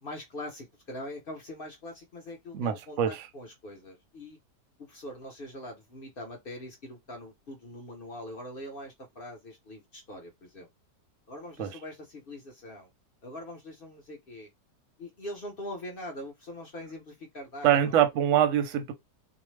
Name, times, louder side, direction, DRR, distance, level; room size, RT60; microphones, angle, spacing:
voice 1, 0.0-4.4 4.8-10.7 11.3-12.9 13.2-14.5 15.0-18.0, left 1 dB, 50° left, 0.6 m, -42 dB
voice 2, 2.5-3.2 11.6-11.7 17.6-18.9, right 10 dB, 65° right, 0.8 m, -24 dB
2.7 x 2.1 x 3.1 m
omnidirectional pair, 1.8 m